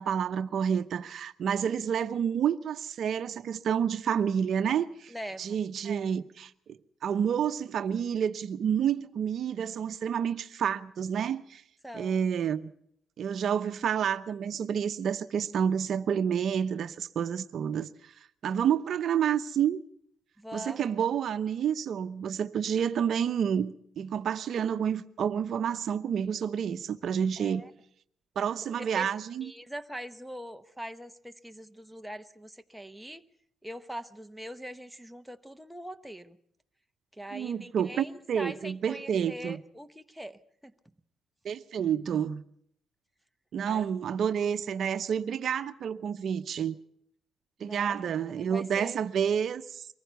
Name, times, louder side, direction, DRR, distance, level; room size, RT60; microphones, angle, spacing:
voice 1, 0.0-11.6 11.9-12.7 13.2-18.1 18.4-19.8 20.5-27.6 28.4-29.5 37.3-39.6 41.4-42.4 43.5-46.8 47.6-49.9, right 8 dB, 60° right, 0.8 m, -29 dB
voice 2, 5.1-5.6 11.8-12.2 20.4-20.9 27.4-27.7 28.8-29.1 29.4-33.2 33.6-36.4 37.1-40.7 43.7-43.8 47.6-49.0, equal, 5° right, 1.0 m, -42 dB
23.5 x 15.0 x 8.1 m
cardioid pair, 90°, 0 cm